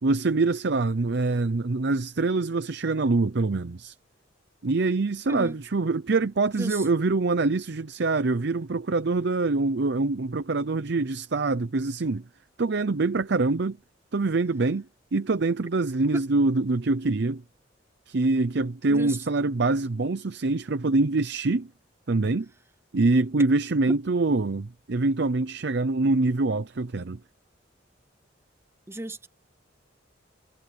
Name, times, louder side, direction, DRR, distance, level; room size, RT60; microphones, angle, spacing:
voice 1, 0.0-4.0 4.6-12.2 12.6-13.8 14.1-14.9 15.1-17.4 18.1-21.7 22.1-22.5 22.9-27.2, right 3 dB, 60° right, 0.7 m, -25 dB
voice 2, 28.9-29.2, right 1 dB, 15° right, 0.9 m, -33 dB
head